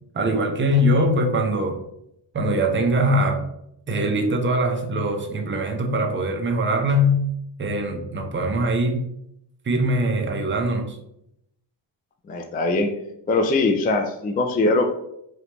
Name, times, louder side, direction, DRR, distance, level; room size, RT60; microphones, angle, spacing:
voice 1, 0.1-1.8 2.3-3.4 3.9-7.3 7.6-9.0 9.7-11.0, equal, 25° right, 3 dB, 0.6 m, -22 dB
voice 2, 12.3-12.9 13.3-14.8, left 2 dB, 25° left, 4 dB, 0.3 m, -21 dB
4.9 x 3.3 x 2.9 m, 0.77 s
wide cardioid pair, 160°, 44 cm